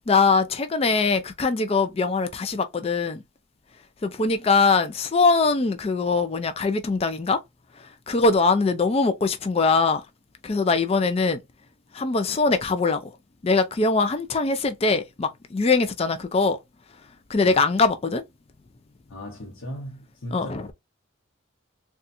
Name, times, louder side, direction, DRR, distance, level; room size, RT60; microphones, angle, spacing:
voice 1, 0.1-3.2 4.0-7.4 7.7-10.1 10.4-11.4 11.9-13.2 13.4-16.6 16.9-18.2 20.3-20.7, left 4 dB, 30° left, 0.4 m, -22 dB
voice 2, 19.1-20.5, equal, 85° left, 0.9 m, -37 dB
4.0 x 2.4 x 2.6 m
head